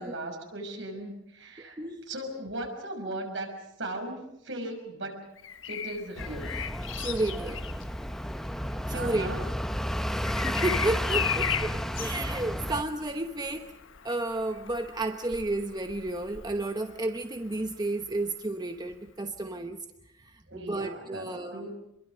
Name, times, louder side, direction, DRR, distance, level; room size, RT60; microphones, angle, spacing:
voice 1, 0.0-1.8 2.1-5.3 5.7-6.6 8.9-9.5 12.1-12.2 20.5-21.7, right 1 dB, 65° right, 3 dB, 5.9 m, -38 dB
voice 2, 1.6-2.1 7.0-7.7 8.9-9.3 10.4-13.7 14.0-19.8 20.2-21.7, right 2 dB, 20° right, 6 dB, 1.0 m, -32 dB
Bird vocalization bird call bird song, 5.4-17.2 18.9-19.1, left 8 dB, 80° left, 1.3 m, -37 dB
sound 1, 6.2-12.8, equal, ahead, 0.8 m, -32 dB
26.5 x 22.5 x 6.3 m, 0.80 s
head